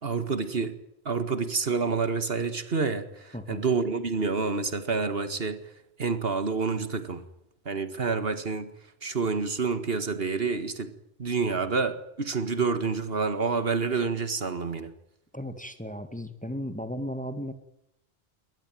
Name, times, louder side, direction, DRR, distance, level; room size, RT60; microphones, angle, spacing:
voice 1, 0.0-0.8 1.1-5.6 6.0-7.2 7.7-8.7 9.0-10.9 11.2-14.9, right 4 dB, 70° right, 11 dB, 2.0 m, -28 dB
voice 2, 3.3-3.6 15.3-17.5, equal, 10° left, 10 dB, 1.9 m, -35 dB
22.5 x 19.5 x 9.2 m, 0.79 s
omnidirectional pair, 1.0 m